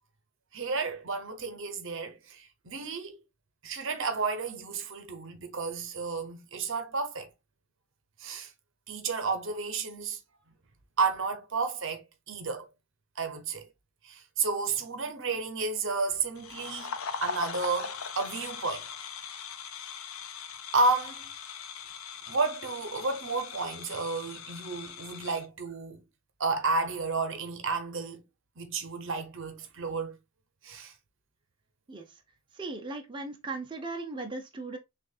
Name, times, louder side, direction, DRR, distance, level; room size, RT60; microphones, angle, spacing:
voice 1, 0.5-3.2 3.6-7.3 8.2-8.5 8.9-10.2 11.0-12.7 13.2-13.7 14.0-16.9 17.2-18.9 20.7-21.3 22.3-26.0 26.4-28.2 28.6-30.2 30.6-30.9, right 4 dB, 65° right, 0.8 m, -32 dB
sound 1, 16.4-25.5, left 6 dB, 85° left, 0.6 m, -40 dB
voice 2, 32.6-34.8, right 3 dB, 25° right, 0.7 m, -37 dB
6.3 x 2.5 x 2.4 m
head